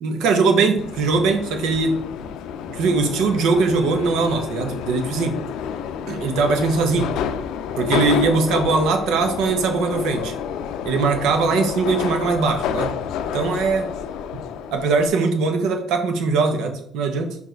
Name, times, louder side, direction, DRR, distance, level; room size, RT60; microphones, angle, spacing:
voice 1, 0.0-2.3 2.7-5.4 6.1-7.1 7.8-10.3 10.8-12.9 13.3-13.9 14.7-17.4, right 4 dB, 90° right, 6 dB, 1.0 m, -21 dB
Subway metro underground, 0.8-15.1, left 8 dB, 90° left, 0.4 m, -29 dB
5.3 x 5.0 x 4.6 m, 0.68 s
cardioid pair, 155°, 0 cm